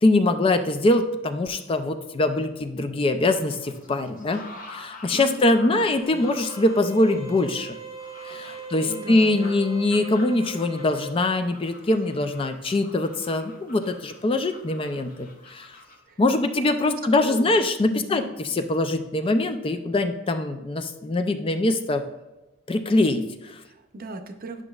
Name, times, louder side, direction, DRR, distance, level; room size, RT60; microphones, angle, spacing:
voice 1, 0.0-4.4 4.7-7.8 8.2-15.8 16.2-18.2 18.6-22.1 22.7-23.6, left 2 dB, 25° left, 8 dB, 0.4 m, -23 dB
sound 1, 3.2-16.0, left 2 dB, 45° left, 0.9 m, -47 dB
voice 2, 5.1-6.3 8.6-9.5 16.1-16.2 16.8-17.0 17.3-17.5 17.9-18.3 23.6-24.6, right 2 dB, 50° right, 6 dB, 0.6 m, -38 dB
sound 2, 6.0-11.1, right 3 dB, 75° left, 1.2 m, -40 dB
9.8 x 5.9 x 2.4 m, 1.0 s
head